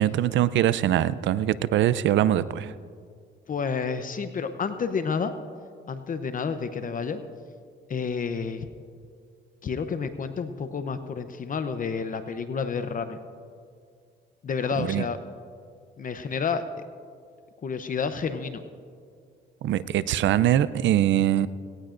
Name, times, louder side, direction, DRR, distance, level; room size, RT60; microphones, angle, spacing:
voice 1, 0.0-2.7 14.8-15.0 19.6-21.5, right 12 dB, 70° right, 16 dB, 0.5 m, -22 dB
voice 2, 3.5-5.3 5.9-7.2 7.9-8.7 9.6-13.2 14.4-15.2 16.0-16.6 17.6-18.6, left 5 dB, 45° left, 9 dB, 0.7 m, -30 dB
18.5 x 18.0 x 2.6 m, 2.2 s
cardioid pair, 90°, 20 cm